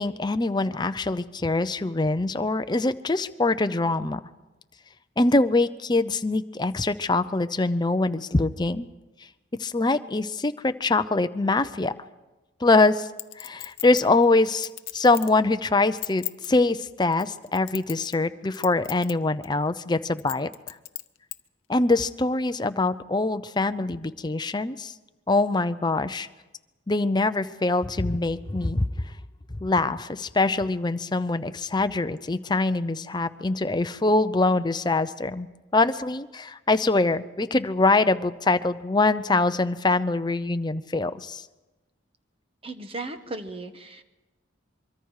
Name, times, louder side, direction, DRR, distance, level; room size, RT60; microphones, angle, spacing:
voice 1, 0.0-4.2 5.2-8.9 9.6-11.9 12.6-13.1 13.4-20.8 21.7-24.9 25.3-26.3 26.9-29.1 29.6-35.5 35.7-41.5, left 2 dB, 20° left, 11 dB, 0.6 m, -24 dB
Chink clink, 13.2-15.4 15.8-16.5 17.1-18.3 18.5-19.1 19.4-19.5 20.2-21.4 21.9-22.0, left 17 dB, 80° left, 0.8 m, -35 dB
voice 2, 42.6-44.0, right 2 dB, 30° right, 7 dB, 1.1 m, -36 dB
24.5 x 23.5 x 4.8 m, 1.1 s
head